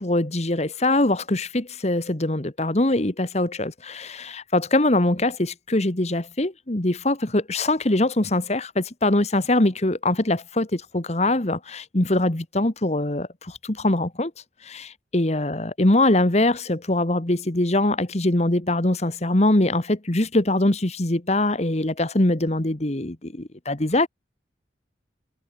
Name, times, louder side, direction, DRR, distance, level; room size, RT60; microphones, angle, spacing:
voice 1, 0.0-14.3 14.6-24.1, left 1 dB, 35° left, 1.5 m, -23 dB
head